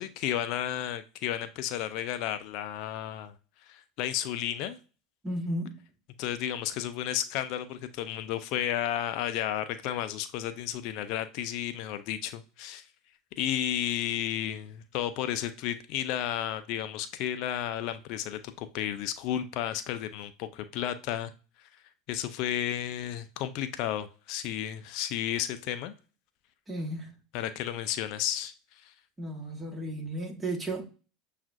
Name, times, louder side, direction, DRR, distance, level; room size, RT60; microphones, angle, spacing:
voice 1, 0.0-3.3 3.7-4.8 6.2-12.8 13.4-21.3 22.1-25.9 27.3-28.5 28.8-28.9, left 11 dB, 60° left, 0.4 m, -32 dB
voice 2, 5.2-5.7 26.7-27.1 29.2-30.9, right 1 dB, 20° right, 1.4 m, -34 dB
7.1 x 2.4 x 2.5 m
hypercardioid pair, 85°, 0 cm